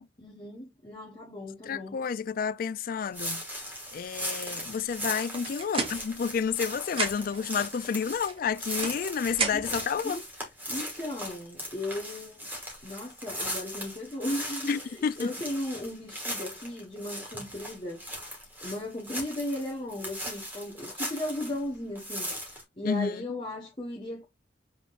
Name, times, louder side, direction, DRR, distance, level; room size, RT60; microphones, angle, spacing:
voice 1, 0.2-1.9 9.5-9.6 10.0-10.2 10.7-12.5 12.8-18.1 18.6-22.3 22.8-24.2, left 1 dB, 25° left, 1.1 m, -36 dB
voice 2, 1.7-3.4 3.9-10.2 14.7-15.3 22.8-23.2, left 6 dB, 50° left, 0.3 m, -30 dB
sound 1, 3.1-21.6 22.0-22.6, equal, 10° right, 2.0 m, -38 dB
sound 2, 5.2-6.6 6.8-7.5 8.2-9.9, right 4 dB, 30° right, 0.9 m, -34 dB
5.7 x 3.6 x 2.5 m
head